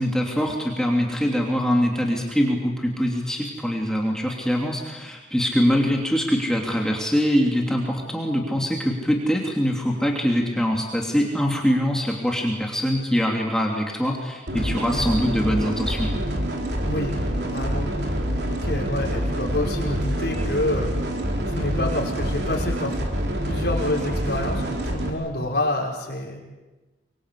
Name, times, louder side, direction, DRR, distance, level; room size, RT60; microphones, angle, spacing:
voice 1, 0.0-16.1, equal, 5° left, 0 dB, 2.9 m, -23 dB
sound 1, 14.5-25.1, equal, 65° right, 4.0 m, -26 dB
voice 2, 16.8-17.1 17.5-17.9 18.5-20.9 21.5-23.0 23.4-26.4, left 1 dB, 60° left, -1 dB, 5.6 m, -27 dB
24.5 x 24.0 x 8.4 m, 1.2 s
head